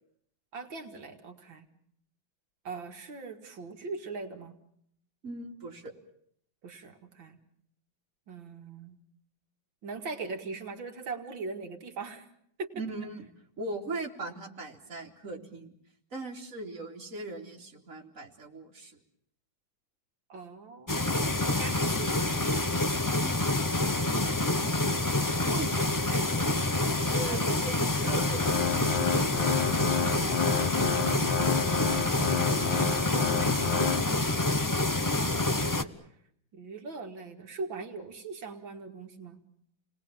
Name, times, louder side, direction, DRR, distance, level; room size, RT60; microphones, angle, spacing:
voice 1, 0.5-1.7 2.6-4.6 6.6-7.4 8.3-9.0 9.8-12.3 12.6-12.7 20.3-22.2 25.3-25.9 27.3-27.7 28.0-28.2 30.9-35.9 36.5-39.4, right 4 dB, 75° right, 4 dB, 2.8 m, -42 dB
voice 2, 5.2-5.9 12.7-13.3 13.6-15.7 16.1-19.0 24.2-24.5 25.4-26.6 27.0-28.4, right 2 dB, 40° right, 0 dB, 3.3 m, -39 dB
sound 1, 20.9-35.8, left 2 dB, 30° left, 0.3 m, -27 dB
Organ, 27.9-34.5, left 7 dB, 75° left, 2.1 m, -31 dB
30.0 x 20.5 x 7.3 m, 0.69 s
omnidirectional pair, 2.1 m